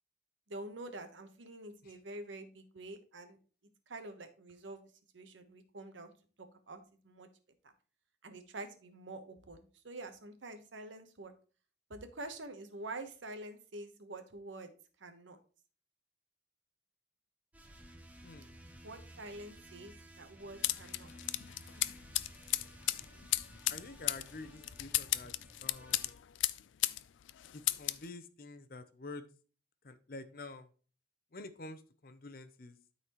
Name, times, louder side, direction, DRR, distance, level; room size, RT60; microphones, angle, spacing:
voice 1, 0.5-3.4 3.9-4.8 5.1-6.1 6.7-7.3 8.2-11.3 11.9-14.7 15.0-15.4 18.8-21.1, right 2 dB, 85° right, 8 dB, 1.1 m, -47 dB
sound 1, 17.5-26.2, right 1 dB, 10° right, 0.7 m, -55 dB
voice 2, 18.2-18.5 23.7-25.3 25.6-26.1 27.5-29.3 29.8-30.7 31.3-32.8, left 2 dB, 50° left, 11 dB, 0.7 m, -48 dB
sound 2, 20.6-27.0 27.3-28.1, left 16 dB, 80° left, 0.4 m, -34 dB
12.5 x 4.1 x 3.0 m, 0.38 s
head